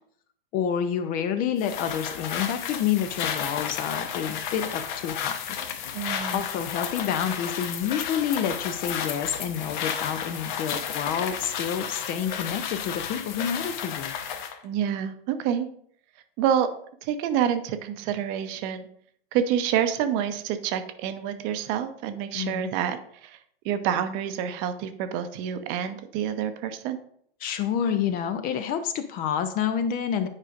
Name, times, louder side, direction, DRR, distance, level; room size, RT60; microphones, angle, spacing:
voice 1, 0.5-5.4 6.3-14.1 22.3-22.7 27.4-30.3, left 8 dB, 30° left, 10 dB, 0.5 m, -28 dB
sound 1, 1.6-14.6, left 8 dB, 50° left, 0.9 m, -33 dB
voice 2, 5.9-6.4 14.6-15.7 16.4-16.7 17.0-18.9 19.3-23.4 23.6-27.0, right 9 dB, 40° right, 9 dB, 0.7 m, -27 dB
9.6 x 4.9 x 2.5 m, 0.64 s
hypercardioid pair, 105°, 30 cm